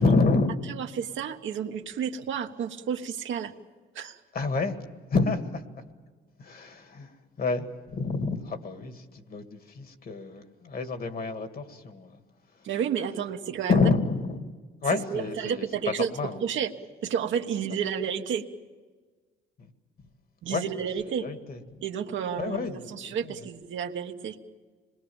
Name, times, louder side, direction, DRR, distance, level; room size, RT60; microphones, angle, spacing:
voice 1, 0.0-0.7 4.3-4.8 5.1-5.7 6.4-12.2 12.6-12.7 13.7-14.5 14.8-16.4 19.6-19.7 20.5-20.6 21.0-21.6 22.4-23.3, left 4 dB, 50° left, 2.1 m, -28 dB
voice 2, 0.7-3.5 3.9-4.2 12.6-13.9 15.1-16.7 17.0-18.5 20.4-21.3 21.8-24.4, right 8 dB, 75° right, 1.4 m, -31 dB
26.5 x 21.5 x 7.2 m
cardioid pair, 90°, 20 cm